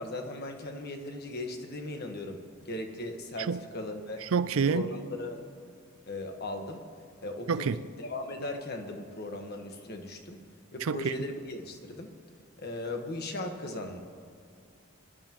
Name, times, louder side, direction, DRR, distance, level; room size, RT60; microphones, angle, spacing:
voice 1, 0.0-4.2 4.6-5.5 6.1-6.8 7.2-10.4 10.7-12.1 12.6-14.0, left 2 dB, 50° left, 1.4 m, -38 dB
voice 2, 4.2-4.9 7.5-7.8 10.8-11.1, right 5 dB, 75° right, 0.5 m, -27 dB
25.0 x 11.5 x 3.0 m
head